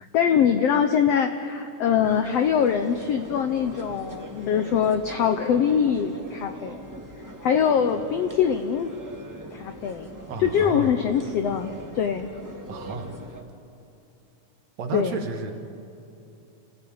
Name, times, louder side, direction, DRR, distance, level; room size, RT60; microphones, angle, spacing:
voice 1, 0.1-6.8 7.4-8.9 9.5-10.1 10.4-12.3 14.9-15.2, left 8 dB, 80° left, 8 dB, 1.4 m, -23 dB
sound 1, 2.0-13.4, right 1 dB, 10° right, 0.8 m, -41 dB
voice 2, 10.3-11.0 12.7-13.1 14.8-15.5, right 5 dB, 60° right, 5 dB, 2.4 m, -32 dB
30.0 x 15.0 x 8.8 m, 2.9 s
omnidirectional pair, 3.9 m